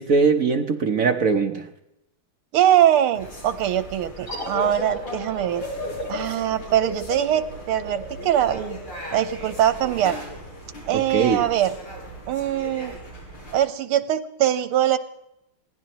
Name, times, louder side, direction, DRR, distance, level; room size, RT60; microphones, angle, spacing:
voice 1, 0.0-1.7 10.9-11.4, right 5 dB, 55° right, 5 dB, 1.0 m, -21 dB
voice 2, 2.5-5.6 6.1-8.8 9.1-10.2 10.9-11.7 12.3-13.0 13.5-15.0, right 11 dB, 85° right, 12 dB, 1.8 m, -22 dB
sound 1, 3.1-13.6, equal, 75° left, 6.8 m, -39 dB
sound 2, 4.3-9.6, left 1 dB, 35° left, 4.8 m, -35 dB
23.0 x 16.5 x 3.0 m, 0.85 s
omnidirectional pair, 2.4 m